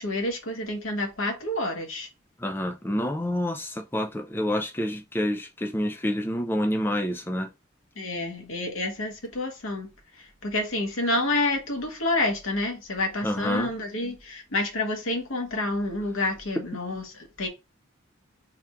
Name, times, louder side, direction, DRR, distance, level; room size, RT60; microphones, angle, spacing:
voice 1, 0.0-2.1 8.0-17.5, left 2 dB, 75° left, 1.2 m, -29 dB
voice 2, 2.4-7.5 13.2-13.7, left 1 dB, 10° left, 0.3 m, -28 dB
3.5 x 2.4 x 4.4 m
head